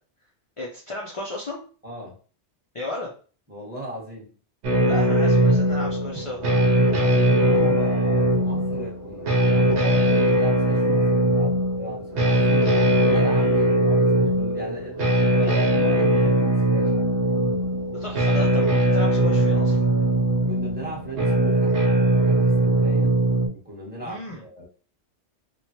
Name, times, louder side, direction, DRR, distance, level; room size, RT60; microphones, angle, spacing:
voice 1, 0.6-1.6 2.7-3.1 4.8-6.4 17.9-19.8 24.0-24.4, left 2 dB, 55° left, 0.3 m, -34 dB
voice 2, 1.8-2.2 3.5-4.3 6.1-6.3 6.7-17.2 20.5-21.8 22.2-23.2 23.5-24.7, right 1 dB, 10° right, 1.0 m, -36 dB
sound 1, 4.6-23.5, right 1 dB, 70° right, 0.9 m, -20 dB
3.0 x 2.1 x 2.8 m
omnidirectional pair, 1.2 m